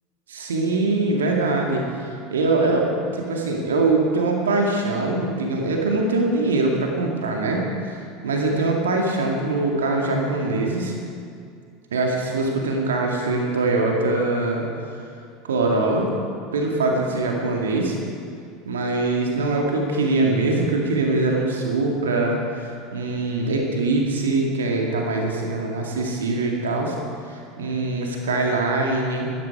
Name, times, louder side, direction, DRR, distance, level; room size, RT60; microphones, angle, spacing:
voice 1, 0.3-7.6 7.9-10.9 11.9-14.6 15.4-16.1 16.5-18.0 18.6-27.0 27.3-29.3, right 2 dB, 75° right, 0 dB, 2.1 m, -23 dB
16.5 x 13.0 x 4.8 m, 2.4 s
figure-of-eight pair, 75°, 0 cm